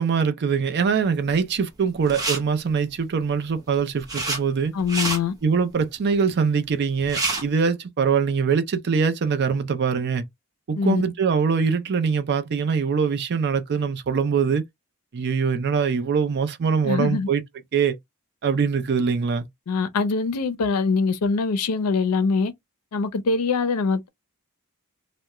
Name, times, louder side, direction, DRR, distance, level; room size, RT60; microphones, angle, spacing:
voice 1, 0.0-4.7 5.4-10.2 10.7-14.6 15.1-17.4 17.7-18.0 18.4-19.5, right 6 dB, 50° right, 0.4 m, -23 dB
sound 1, 2.0-2.4 3.6-4.4 4.8-5.2 6.7-6.8 7.0-7.4, right 3 dB, 15° right, 0.8 m, -27 dB
voice 2, 4.7-5.3 10.8-11.0 16.8-17.3 19.7-22.5 22.9-24.1, left 4 dB, 85° left, 0.5 m, -23 dB
2.3 x 2.1 x 2.8 m
head